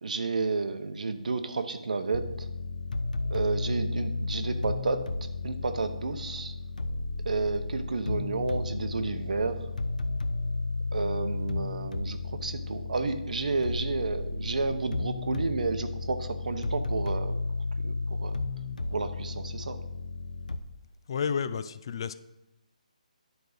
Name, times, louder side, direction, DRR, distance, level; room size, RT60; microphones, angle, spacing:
voice 1, 0.0-2.5 3.3-5.1 5.4-6.6 7.2-9.6 10.9-17.4 17.8-18.4 18.9-19.8, right 3 dB, 70° right, 9 dB, 0.9 m, -31 dB
sound 1, 2.1-20.6, left 3 dB, 85° left, 0.7 m, -33 dB
voice 2, 21.1-22.1, left 6 dB, 40° left, 13 dB, 0.4 m, -31 dB
10.5 x 4.6 x 5.0 m, 0.90 s
hypercardioid pair, 165°, 4 cm